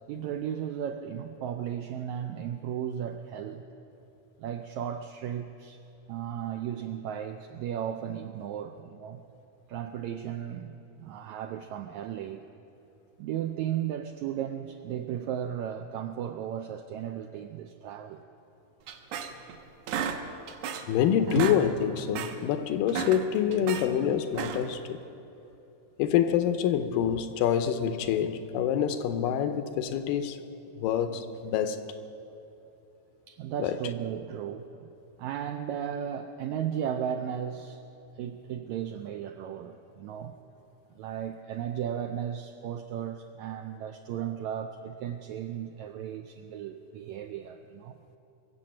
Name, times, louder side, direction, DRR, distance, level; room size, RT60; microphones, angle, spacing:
voice 1, 0.1-3.6 4.4-5.8 6.1-9.2 9.7-12.4 13.2-18.2 21.3-21.4 33.3-34.9 35.2-37.8 38.2-40.4 40.9-48.0, right 9 dB, 85° right, 1.6 m, -35 dB
sound 1, 18.9-19.6 19.9-21.0 21.2-21.6 22.0-22.4 22.8-23.9 24.3-24.8, right 7 dB, 70° right, 1.7 m, -33 dB
voice 2, 20.9-25.0 26.0-30.4 30.8-31.8 33.6-33.8, left 9 dB, 85° left, 2.4 m, -26 dB
23.0 x 7.7 x 7.5 m
omnidirectional pair, 3.9 m